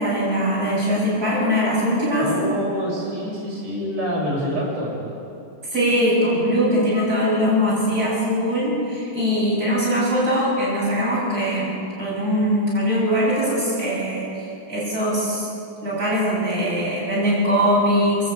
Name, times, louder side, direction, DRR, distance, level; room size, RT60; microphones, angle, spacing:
voice 1, 0.0-2.3 5.7-14.3 14.7-15.5 15.8-18.2, equal, 25° right, -6 dB, 8.1 m, -21 dB
voice 2, 2.2-5.0, equal, 45° right, -4 dB, 7.3 m, -26 dB
29.0 x 13.0 x 8.9 m, 2.6 s
omnidirectional pair, 4.2 m